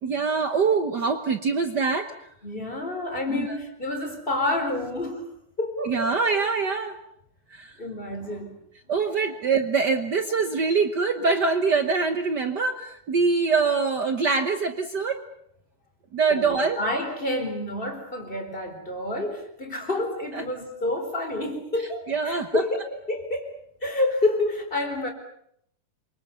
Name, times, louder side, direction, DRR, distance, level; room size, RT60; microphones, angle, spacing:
voice 1, 0.0-2.3 3.3-3.6 5.8-7.0 7.5-7.8 8.9-15.2 16.1-16.8 20.3-20.4 22.1-22.6, right 4 dB, 70° right, 7 dB, 0.9 m, -24 dB
voice 2, 2.4-5.3 5.6-6.0 7.8-8.5 16.3-23.5 23.8-25.1, left 2 dB, 15° left, 4 dB, 4.3 m, -28 dB
28.5 x 25.0 x 7.0 m, 0.72 s
omnidirectional pair, 3.9 m